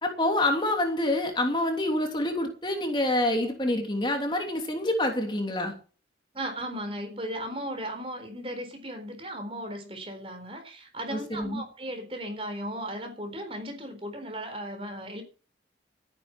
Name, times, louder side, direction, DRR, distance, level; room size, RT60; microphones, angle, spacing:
voice 1, 0.0-5.7 11.1-11.6, left 1 dB, 25° left, 3 dB, 3.0 m, -27 dB
voice 2, 6.3-15.2, right 1 dB, 30° right, 7 dB, 4.1 m, -36 dB
14.0 x 9.9 x 6.1 m, 0.38 s
head